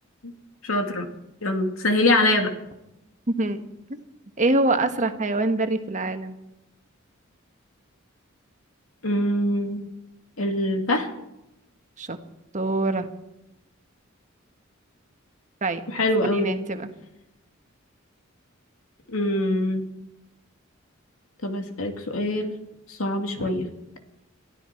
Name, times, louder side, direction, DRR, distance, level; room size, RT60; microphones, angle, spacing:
voice 1, 0.6-1.1 1.4-2.5 9.0-9.8 10.4-11.1 15.9-16.6 19.1-19.8 21.4-22.5 22.9-23.7, left 1 dB, 90° left, 5 dB, 2.5 m, -24 dB
voice 2, 3.3-3.6 3.9-4.0 4.4-6.3 12.0-12.2 12.5-13.1 15.6-15.8 16.3-16.9 23.4-23.5, right 2 dB, 40° right, 7 dB, 1.4 m, -24 dB
23.5 x 14.0 x 4.5 m, 0.90 s
head